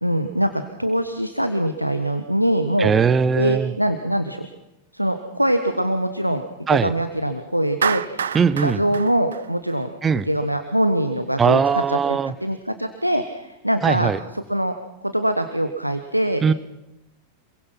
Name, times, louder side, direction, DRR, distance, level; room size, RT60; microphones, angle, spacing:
voice 1, 0.0-2.9 3.4-4.5 4.9-6.4 6.7-8.2 8.6-9.9 10.3-11.6 11.9-14.8 15.0-16.4, right 1 dB, 90° right, 8 dB, 1.3 m, -23 dB
voice 2, 2.8-3.7 6.7-6.9 8.3-8.8 10.0-10.3 11.4-12.3 13.8-14.2 16.4-16.5, right 6 dB, 20° right, 16 dB, 1.0 m, -19 dB
Clapping, 7.8-10.1, right 7 dB, 65° right, 0.8 m, -27 dB
27.0 x 22.5 x 5.9 m, 0.92 s
figure-of-eight pair, 90°, 0 cm